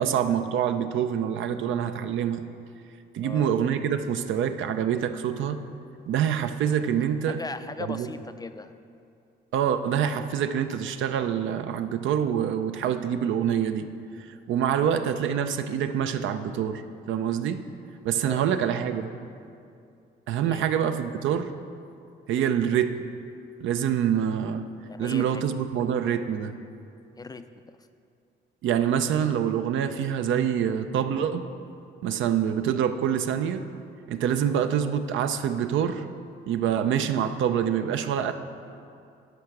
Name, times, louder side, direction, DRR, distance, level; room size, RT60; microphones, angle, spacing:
voice 1, 0.0-2.4 3.1-5.6 6.1-7.4 7.9-8.1 9.5-13.9 14.2-16.8 17.1-17.6 18.0-19.1 20.3-21.5 22.3-23.1 23.6-24.7 25.0-26.5 28.6-31.4 32.0-33.6 34.1-36.1 36.5-38.3, right 9 dB, 75° right, 9 dB, 0.5 m, -26 dB
voice 2, 3.2-3.6 7.3-8.7 18.2-18.5 20.4-20.7 24.9-25.4 27.2-27.8, left 3 dB, 20° left, 10 dB, 0.4 m, -38 dB
10.5 x 4.7 x 6.5 m, 2.5 s
cardioid pair, 90°, 20 cm